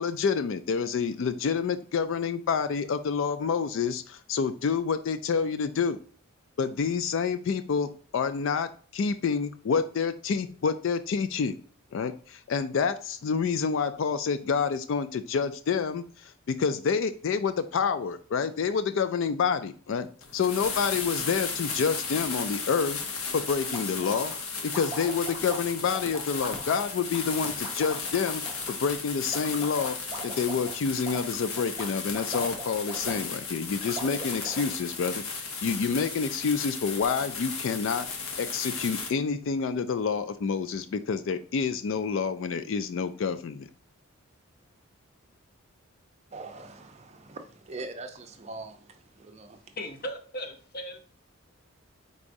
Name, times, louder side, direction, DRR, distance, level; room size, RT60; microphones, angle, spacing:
voice 1, 0.0-6.0 6.6-11.5 11.9-23.0 23.3-24.3 24.6-28.4 28.7-30.0 30.2-38.1 38.4-43.7, left 6 dB, 65° left, 12 dB, 0.3 m, -28 dB
sound 1, 20.2-39.1, left 4 dB, 85° left, 0.9 m, -35 dB
sound 2, 23.5-33.4 33.8-34.7, right 2 dB, 15° right, 1.1 m, -41 dB
voice 2, 46.3-49.8, right 3 dB, 30° right, 6 dB, 0.5 m, -42 dB
voice 3, 49.8-51.0, equal, 45° left, 5 dB, 0.7 m, -37 dB
4.7 x 4.1 x 2.6 m, 0.43 s
head